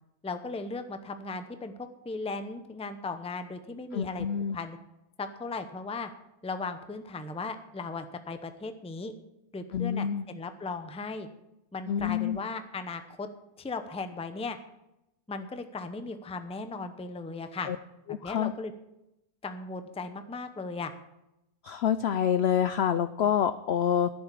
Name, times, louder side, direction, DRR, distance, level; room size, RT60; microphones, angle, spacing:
voice 1, 0.2-4.3 4.5-4.8 5.2-6.1 6.4-9.1 9.5-11.3 11.7-13.3 13.6-14.6 15.3-17.7 18.2-18.7 19.4-20.9, left 3 dB, 5° left, 8 dB, 0.4 m, -37 dB
voice 2, 3.9-4.6 9.7-10.3 11.9-12.4 17.7-17.8 18.1-18.5 21.6-24.1, left 9 dB, 75° left, 12 dB, 0.6 m, -27 dB
12.0 x 7.2 x 8.5 m, 0.90 s
omnidirectional pair, 1.7 m